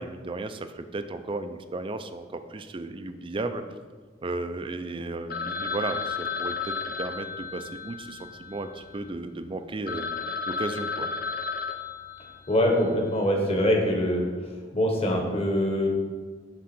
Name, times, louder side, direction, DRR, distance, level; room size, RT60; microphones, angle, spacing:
voice 1, 0.0-3.6 4.2-10.1 10.5-11.1, right 2 dB, 30° right, 9 dB, 0.4 m, -34 dB
Telephone, 5.3-9.1 9.6-9.7 9.9-12.7, left 5 dB, 55° left, 0.6 m, -33 dB
voice 2, 12.5-14.2 14.7-15.9, equal, 35° left, 1 dB, 1.3 m, -23 dB
9.5 x 3.7 x 6.0 m, 1.5 s
head